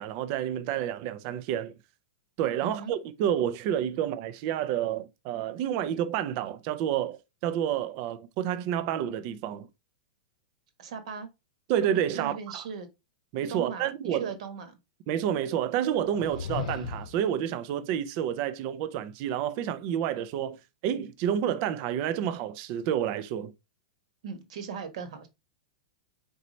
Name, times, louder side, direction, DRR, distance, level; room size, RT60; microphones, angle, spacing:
voice 1, 0.0-1.7 2.4-9.7 11.7-12.6 13.3-14.3 15.1-23.5, right 10 dB, 30° right, 0.4 m, -29 dB
voice 2, 2.6-2.9 10.8-11.3 12.1-12.9 13.5-14.8 24.2-25.3, right 6 dB, 50° right, 1.1 m, -38 dB
sound 1, 16.0-17.3, left 7 dB, 65° left, 0.8 m, -36 dB
4.4 x 4.0 x 3.0 m
supercardioid pair, 180°, 4 cm